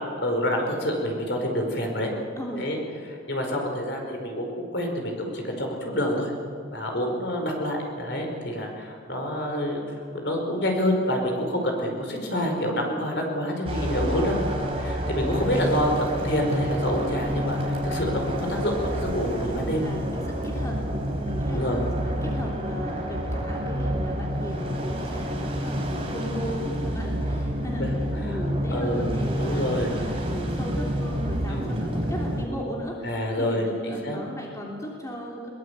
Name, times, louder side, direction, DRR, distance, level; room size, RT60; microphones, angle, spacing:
voice 1, 0.0-2.1 2.6-2.8 3.3-6.3 6.7-9.8 10.1-14.4 14.8-15.9 16.2-19.8 21.5-21.8 27.8-28.4 28.7-29.0 29.4-29.9 31.5-31.8 33.0-34.2, equal, 60° left, 2 dB, 5.1 m, -27 dB
voice 2, 2.4-2.7 19.6-35.5, equal, 15° left, -2 dB, 3.1 m, -36 dB
sound 1, 13.6-32.4, equal, 30° right, 4.1 m, -28 dB
22.5 x 21.5 x 8.4 m, 2.4 s
head